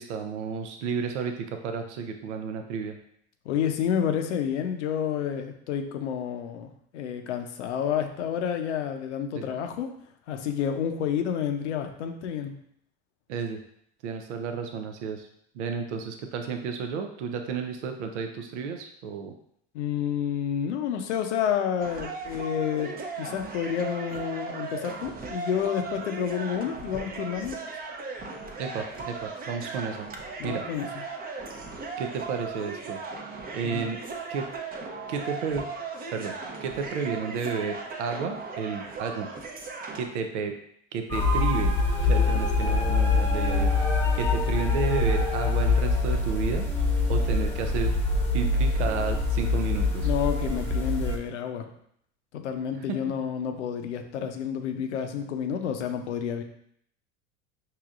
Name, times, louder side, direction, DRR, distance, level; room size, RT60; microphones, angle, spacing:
voice 1, 0.0-3.0 9.4-9.5 13.3-13.6 14.0-15.3 15.5-19.3 28.6-30.1 30.4-30.6 32.0-33.0 33.5-34.0 34.3-34.5 35.1-35.7 36.1-36.3 36.6-39.3 39.9-40.6 40.9-41.8 42.0-43.7 44.1-46.7 47.1-47.9 48.3-50.1, right 5 dB, 80° right, 5 dB, 0.6 m, -32 dB
voice 2, 3.4-9.9 10.3-12.6 19.7-27.6 30.4-30.9 33.6-33.9 42.3-42.4 50.0-51.7 52.3-56.4, left 8 dB, 85° left, 6 dB, 0.6 m, -29 dB
sound 1, 21.8-40.1, right 4 dB, 25° right, 0.6 m, -37 dB
sound 2, 41.1-51.2, left 3 dB, 5° left, 0.9 m, -24 dB
4.9 x 2.8 x 2.4 m, 0.69 s
hypercardioid pair, 90°, 34 cm